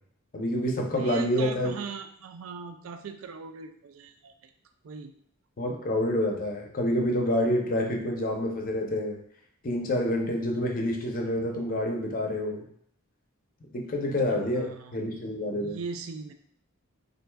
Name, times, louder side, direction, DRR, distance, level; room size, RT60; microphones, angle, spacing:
voice 1, 0.3-1.7 5.6-9.2 9.6-12.6 13.7-15.8, left 1 dB, 40° left, 2 dB, 0.6 m, -28 dB
voice 2, 0.9-4.3 4.8-5.1 14.3-15.0 15.6-16.3, right 5 dB, 70° right, 7 dB, 0.4 m, -39 dB
4.4 x 2.5 x 2.2 m, 0.67 s
head